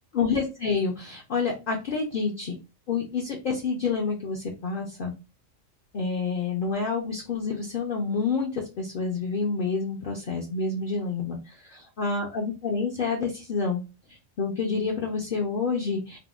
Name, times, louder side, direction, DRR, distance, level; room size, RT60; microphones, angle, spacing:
voice 1, 0.1-2.6 2.9-5.1 5.9-13.8 14.1-16.2, left 4 dB, 55° left, 0 dB, 0.6 m, -28 dB
3.5 x 2.0 x 2.4 m, 0.29 s
omnidirectional pair, 1.3 m